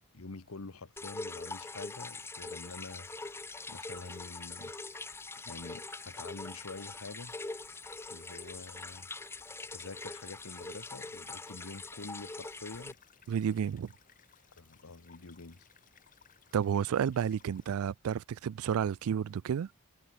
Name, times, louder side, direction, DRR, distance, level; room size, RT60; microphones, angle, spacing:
voice 1, 0.1-3.1 3.7-4.7 5.4-7.3 8.1-9.1 9.7-13.0 14.6-15.7, left 3 dB, 70° left, 1.2 m, -46 dB
sound 1, 1.0-17.7, left 8 dB, 40° left, 1.2 m, -63 dB
Water dripping with natural effect, 1.0-12.9, left 3 dB, 10° left, 0.6 m, -43 dB
voice 2, 13.3-13.9 16.5-19.7, right 8 dB, 75° right, 0.3 m, -31 dB
head